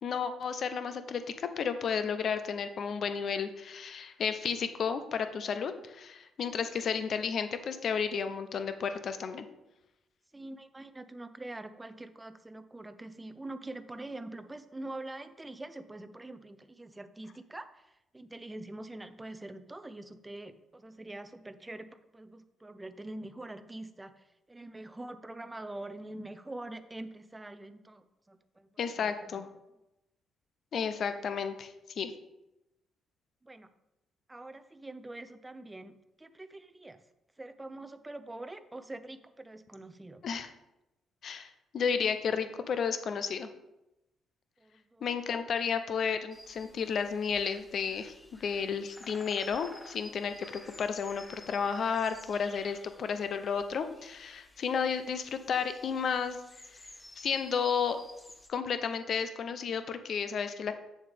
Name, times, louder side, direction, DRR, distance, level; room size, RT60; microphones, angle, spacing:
voice 1, 0.0-9.5 28.8-29.5 30.7-32.1 40.2-40.5 41.2-43.5 45.0-48.1 48.4-56.4 57.2-58.0 58.5-60.7, left 6 dB, 60° left, 10 dB, 0.7 m, -32 dB
voice 2, 10.3-29.4 33.4-33.7 34.3-37.0 37.4-40.2 44.6-45.1, right 2 dB, 15° right, 10 dB, 0.6 m, -45 dB
sound 1, 46.3-58.5, left 1 dB, 15° left, 0.8 m, -52 dB
8.7 x 7.0 x 3.5 m, 0.93 s
cardioid pair, 90°, 0 cm